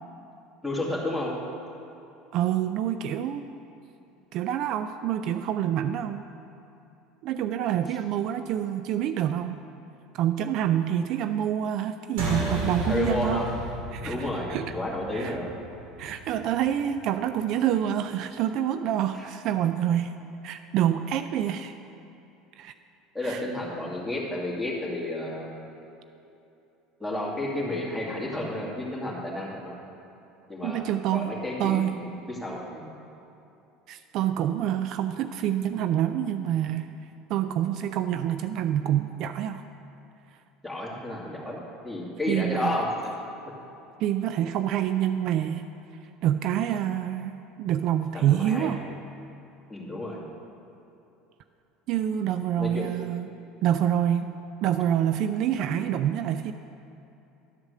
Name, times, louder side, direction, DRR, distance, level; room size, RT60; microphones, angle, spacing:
voice 1, 0.6-1.3 12.9-13.5 14.0-15.5 19.1-19.3 23.1-25.6 27.0-29.8 30.5-33.0 40.6-41.6 41.8-42.9 48.1-48.7 49.7-50.2 52.6-52.8, left 1 dB, ahead, -5 dB, 2.2 m, -31 dB
voice 2, 2.3-3.5 4.3-6.2 7.2-9.5 10.1-13.5 13.9-14.7 15.1-15.4 16.0-20.1 20.4-21.7 22.6-22.7 23.2-23.4 30.6-31.3 31.6-32.0 33.9-36.9 37.3-39.6 42.3-42.8 44.0-45.7 46.2-48.8 51.9-53.3 53.6-54.3 54.6-56.5, right 10 dB, 55° right, 10 dB, 0.3 m, -27 dB
sound 1, 12.2-17.0, right 1 dB, 85° right, 2.2 m, -33 dB
11.5 x 4.8 x 6.5 m, 2.9 s
supercardioid pair, 110°, 0 cm